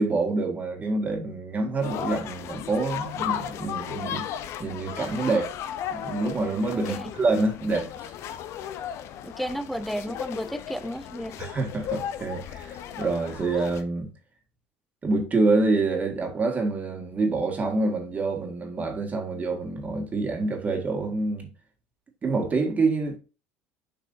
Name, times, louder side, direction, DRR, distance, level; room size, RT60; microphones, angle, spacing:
voice 1, 0.0-4.3 4.6-5.5 5.9-8.1 11.4-14.1 15.0-21.5 22.2-23.2, right 3 dB, 30° right, 1.9 m, -26 dB
sound 1, 1.8-13.8, left 10 dB, 55° left, 0.7 m, -35 dB
voice 2, 9.2-11.4, equal, ahead, 0.5 m, -32 dB
7.7 x 4.8 x 2.7 m
supercardioid pair, 100°, 6 cm